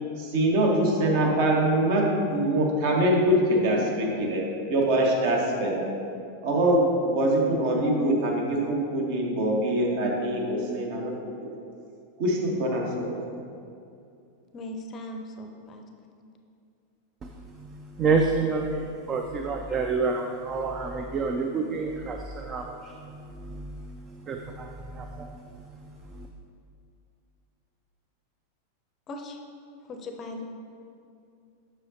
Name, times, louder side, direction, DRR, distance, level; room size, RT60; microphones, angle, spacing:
voice 1, 0.2-4.4 4.7-5.9 6.4-11.3 12.2-13.2, right 1 dB, 50° right, -1 dB, 1.2 m, -24 dB
voice 2, 14.5-15.8 29.1-29.4 29.9-30.4, left 1 dB, 30° left, 4 dB, 0.6 m, -38 dB
voice 3, 17.2-26.3, right 4 dB, 25° right, 3 dB, 0.4 m, -29 dB
7.7 x 6.3 x 2.8 m, 2.5 s
figure-of-eight pair, 90°, 0 cm